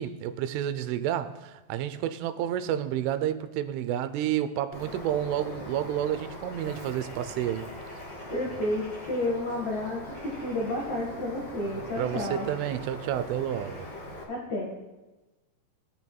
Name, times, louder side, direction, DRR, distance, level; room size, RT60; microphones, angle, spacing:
voice 1, 0.0-7.7 12.0-13.9, right 11 dB, 85° right, 3.1 m, -30 dB
Bird, 4.7-14.2, left 1 dB, 35° left, 1.9 m, -41 dB
voice 2, 8.3-12.5 14.3-14.7, left 1 dB, 70° left, 1.7 m, -31 dB
22.5 x 10.0 x 2.3 m
omnidirectional pair, 5.5 m